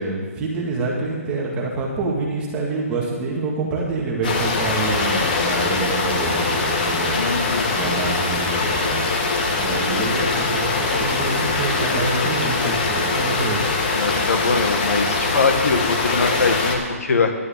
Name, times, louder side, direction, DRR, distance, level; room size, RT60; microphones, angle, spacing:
voice 1, 0.0-7.2 7.7-9.0 9.6-13.6, right 3 dB, 10° right, -3 dB, 1.9 m, -26 dB
sound 1, 4.2-16.7, left 3 dB, 35° left, 1.8 m, -22 dB
voice 2, 7.1-7.8 12.5-12.7 13.9-17.3, left 4 dB, 70° left, 5 dB, 1.8 m, -22 dB
11.5 x 6.4 x 9.1 m, 1.5 s
hypercardioid pair, 165°, 8 cm